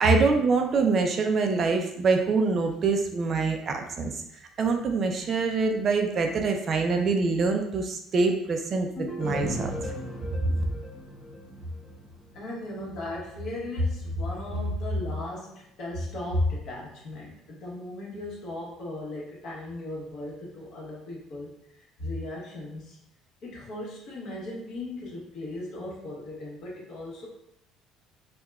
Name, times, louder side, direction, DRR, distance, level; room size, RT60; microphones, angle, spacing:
voice 1, 0.0-4.1 4.6-9.7, right 4 dB, 35° right, 4 dB, 0.4 m, -25 dB
sound 1, 9.0-11.9, left 2 dB, 35° left, 0.7 m, -38 dB
sound 2, 9.2-17.4 17.9-18.0, right 1 dB, ahead, 1.1 m, -42 dB
voice 2, 12.3-23.0 23.4-27.3, left 1 dB, 60° left, -4 dB, 1.2 m, -34 dB
4.6 x 2.2 x 2.3 m, 0.76 s
cardioid pair, 145°, 0 cm